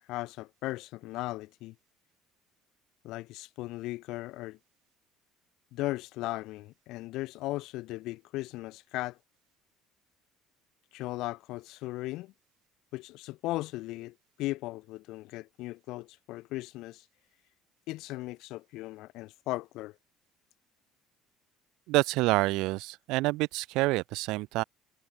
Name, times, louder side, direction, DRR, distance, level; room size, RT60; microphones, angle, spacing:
voice 1, 0.1-1.7 3.0-4.6 5.7-9.2 10.9-12.3 12.9-17.1 17.9-20.0, left 18 dB, 60° left, 0.7 m, -37 dB
voice 2, 21.9-24.6, right 21 dB, 65° right, 0.3 m, -27 dB
cardioid pair, 175°, 0 cm